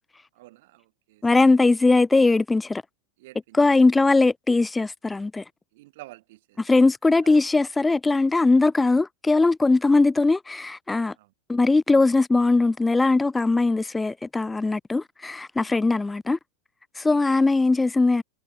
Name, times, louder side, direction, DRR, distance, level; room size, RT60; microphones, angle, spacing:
voice 1, 0.3-1.2 3.2-3.6 5.7-6.6 7.2-7.3 11.1-11.3 15.6-15.7, right 19 dB, 55° right, 2.5 m, -48 dB
voice 2, 1.2-2.8 3.5-5.4 6.6-11.1 11.5-16.4 17.0-18.2, left 3 dB, 10° left, 0.3 m, -20 dB
figure-of-eight pair, 85°, 0 cm